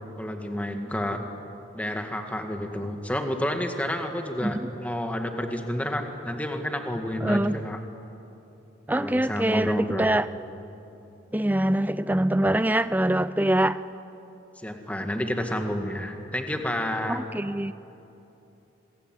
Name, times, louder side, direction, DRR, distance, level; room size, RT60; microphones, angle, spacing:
voice 1, 0.2-1.2 1.7-7.8 8.9-10.1 14.6-17.2, left 1 dB, 5° left, 5 dB, 1.8 m, -30 dB
voice 2, 7.2-7.6 8.9-10.3 11.3-13.8 17.1-17.7, right 1 dB, 10° right, 15 dB, 0.5 m, -24 dB
26.0 x 22.0 x 9.2 m, 3.0 s
head